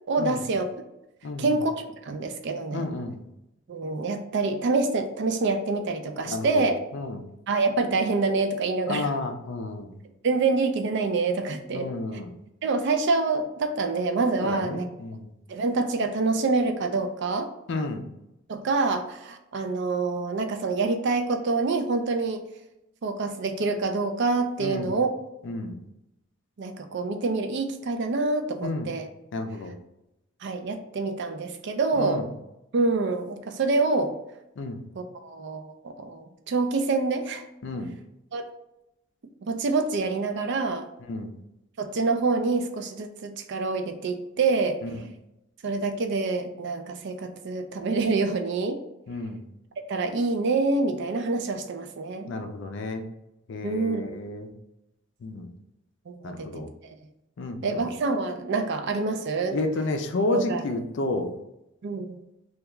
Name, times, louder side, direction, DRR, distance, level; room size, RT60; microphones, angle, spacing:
voice 1, 0.1-0.7 1.4-1.7 2.0-2.9 3.7-6.7 7.5-9.1 10.2-11.9 12.6-14.9 15.5-17.5 18.5-22.4 23.0-25.1 26.6-29.1 30.4-32.3 32.7-34.1 35.0-37.4 38.3-38.4 39.4-40.9 41.8-44.8 45.6-48.8 49.9-52.3 53.6-54.2 56.1-56.9 57.6-59.6 60.3-60.6 61.8-62.2, right 3 dB, 55° right, 6 dB, 0.4 m, -26 dB
voice 2, 1.2-1.6 2.7-3.2 6.2-7.2 8.9-10.0 11.7-12.3 14.4-15.3 17.7-18.1 24.6-25.0 25.4-25.8 28.6-28.9 29.3-29.8 32.0-32.3 34.6-34.8 37.6-37.9 41.1-41.4 44.8-45.0 49.1-49.4 52.3-53.0 53.5-54.5 55.2-55.5 56.2-56.7 57.4-57.9 59.5-61.3, left 2 dB, 60° left, 6 dB, 0.4 m, -31 dB
3.4 x 2.3 x 2.9 m, 0.88 s
head